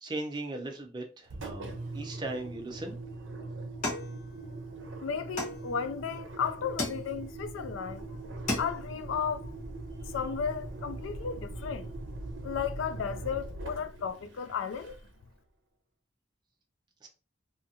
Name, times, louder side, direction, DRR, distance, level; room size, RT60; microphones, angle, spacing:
voice 1, 0.0-2.9 17.0-17.1, right 2 dB, 25° right, 0.5 m, -38 dB
Engine, 1.3-15.2, right 2 dB, 80° right, 0.6 m, -41 dB
sound 1, 3.8-4.8 5.4-6.1 6.8-7.5 8.0-8.1 8.3-9.0, left 2 dB, 40° left, 0.8 m, -36 dB
voice 2, 5.0-8.2 8.6-9.5 10.1-11.9 12.4-14.9, left 7 dB, 90° left, 0.3 m, -34 dB
2.7 x 2.4 x 2.7 m
head